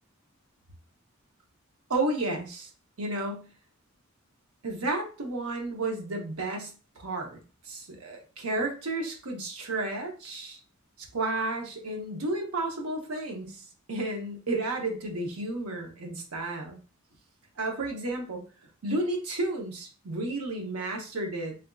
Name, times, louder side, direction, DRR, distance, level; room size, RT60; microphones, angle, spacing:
voice 1, 1.9-2.7 3.0-3.5 4.6-10.6 11.0-13.6 13.9-16.8 17.6-18.4 18.8-21.6, right 2 dB, 85° right, 2 dB, 0.8 m, -32 dB
3.3 x 2.6 x 2.3 m, 0.35 s
head